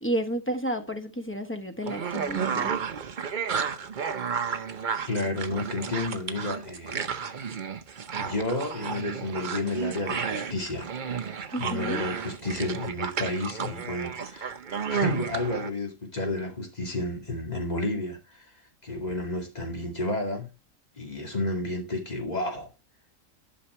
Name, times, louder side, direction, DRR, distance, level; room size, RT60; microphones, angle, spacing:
voice 1, 0.0-2.7 11.5-12.0, right 1 dB, 10° left, 1.0 m, -31 dB
sound 1, 1.8-15.7, right 6 dB, 45° right, 0.8 m, -32 dB
voice 2, 5.1-7.3 8.2-10.9 11.6-14.6 14.9-18.5 18.8-20.5 21.0-22.7, left 2 dB, 30° left, 2.3 m, -31 dB
11.5 x 6.0 x 4.3 m
omnidirectional pair, 1.4 m